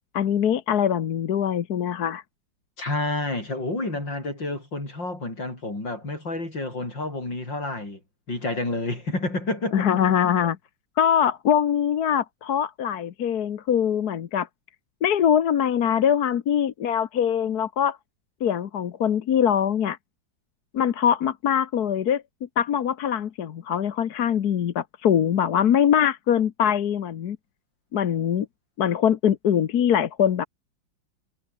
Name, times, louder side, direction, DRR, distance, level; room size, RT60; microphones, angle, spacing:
voice 1, 0.1-2.2 9.7-10.6 11.0-14.5 15.0-18.0 18.4-20.0 20.7-22.2 22.6-27.4 27.9-28.5 28.8-30.5, left 9 dB, 60° left, 1.5 m, -23 dB
voice 2, 2.8-8.0 8.3-9.9, left 2 dB, 80° left, 8.9 m, -29 dB
omnidirectional pair, 2.0 m